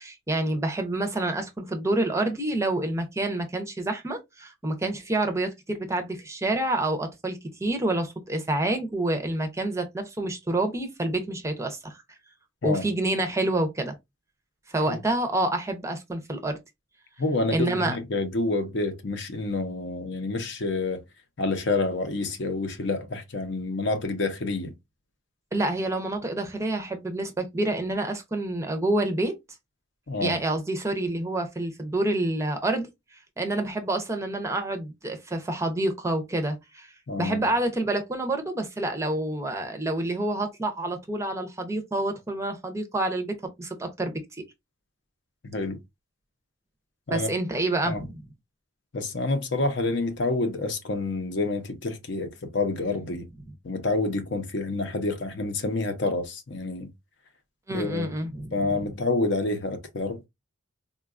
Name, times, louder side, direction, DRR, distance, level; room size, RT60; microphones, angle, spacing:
voice 1, 0.0-12.0 12.6-13.9 14.7-16.6 17.5-18.0 25.5-29.4 30.2-32.9 33.4-36.9 37.2-44.4 47.1-48.2 57.7-58.5, right 2 dB, 15° right, 0.5 m, -28 dB
voice 2, 17.2-21.0 21.4-24.7 30.1-30.4 37.1-37.5 45.4-45.8 47.1-47.3 47.9-48.0 48.9-53.3 53.6-56.9 57.7-58.1 58.5-60.3, left 2 dB, 60° left, 0.7 m, -28 dB
3.7 x 2.2 x 2.4 m
head